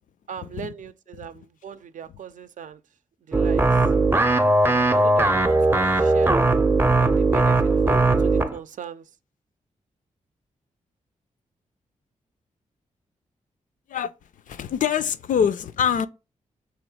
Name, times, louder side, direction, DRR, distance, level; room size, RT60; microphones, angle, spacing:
voice 1, 0.3-2.8 3.3-3.6 4.7-6.7 7.0-9.0, right 8 dB, 65° right, 0.5 m, -39 dB
sound 1, 3.3-8.6, right 2 dB, 15° right, 0.6 m, -19 dB
voice 2, 14.5-16.1, left 8 dB, 70° left, 0.4 m, -24 dB
3.6 x 3.1 x 4.7 m
cardioid pair, 50°, 14 cm